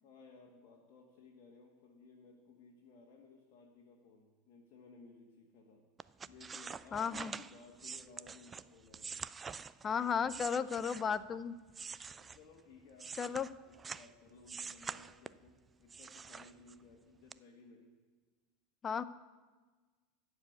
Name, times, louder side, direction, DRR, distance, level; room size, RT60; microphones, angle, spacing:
voice 1, 0.0-5.9 6.3-9.2 12.1-18.0, left 4 dB, 50° left, -1 dB, 2.0 m, -59 dB
sound 1, 6.0-11.3 11.7-14.1 14.5-15.5 15.9-16.9 17.3-17.4, right 5 dB, 20° right, 0.3 m, -46 dB
voice 2, 6.9-7.3 9.8-11.5 13.2-13.5 18.8-19.0, left 6 dB, 25° left, 15 dB, 0.5 m, -34 dB
13.5 x 4.9 x 8.3 m, 1.4 s
figure-of-eight pair, 80°, 0 cm